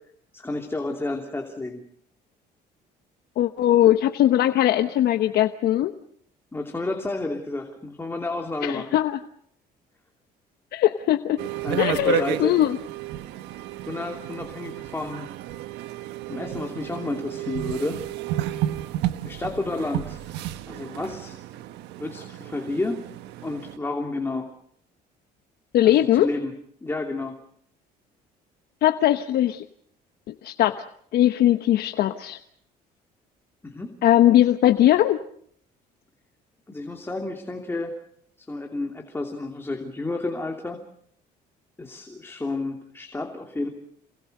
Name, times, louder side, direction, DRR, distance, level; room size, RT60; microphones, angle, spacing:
voice 1, 0.3-1.8 6.5-9.0 11.6-12.6 13.9-15.3 16.3-18.1 19.2-20.3 20.7-21.4 22.0-23.0 23.4-24.5 25.8-26.5 26.8-27.4 33.6-33.9 36.7-38.0 38.4-40.8 41.8-43.7, left 2 dB, 15° left, 3 dB, 2.9 m, -31 dB
voice 2, 3.4-5.9 8.6-9.2 10.7-11.4 11.8-12.8 25.7-26.3 28.8-29.6 30.3-30.8 31.1-32.4 34.0-35.2, left 12 dB, 70° left, 8 dB, 1.1 m, -20 dB
sound 1, 11.4-23.8, right 13 dB, 90° right, 1.4 m, -32 dB
28.0 x 20.5 x 6.7 m, 0.67 s
cardioid pair, 110°, 17 cm